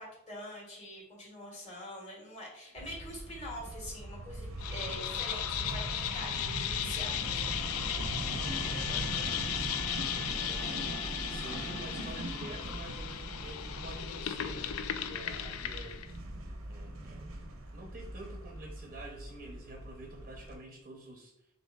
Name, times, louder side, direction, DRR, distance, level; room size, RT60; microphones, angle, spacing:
voice 1, 0.0-5.9 6.1-7.5, equal, 35° left, -2 dB, 1.4 m, -44 dB
sound 1, 2.8-20.6, right 1 dB, 90° right, 0.7 m, -41 dB
sound 2, 4.6-16.1, left 10 dB, 90° left, 0.3 m, -36 dB
Wind instrument woodwind instrument, 8.4-12.6 15.3-15.5, left 2 dB, 55° left, 0.9 m, -49 dB
voice 2, 8.4-10.9 11.3-16.3 16.7-17.3 17.7-21.5, right 1 dB, 35° right, 0 dB, 0.6 m, -48 dB
6.0 x 2.7 x 2.3 m, 0.80 s
head